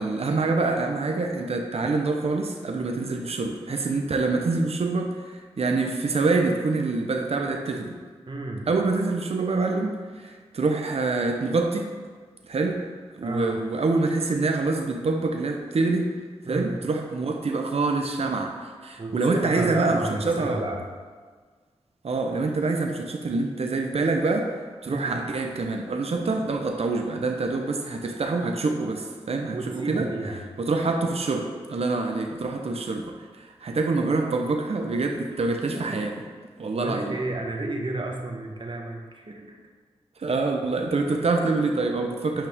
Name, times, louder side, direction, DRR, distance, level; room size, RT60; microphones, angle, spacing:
voice 1, 0.0-8.0 8.7-11.9 12.4-12.9 13.1-16.1 16.5-20.6 22.0-24.5 24.8-30.1 30.6-36.2 36.6-37.2 40.2-42.5, right 3 dB, 65° right, 3 dB, 0.8 m, -26 dB
voice 2, 8.3-8.7 13.2-13.6 16.4-16.8 19.0-20.8 24.8-25.2 29.5-30.4 35.7-36.1 36.8-39.6, right 2 dB, 45° right, 1 dB, 1.3 m, -32 dB
8.6 x 5.6 x 3.6 m, 1.5 s
cardioid pair, 40°, 11 cm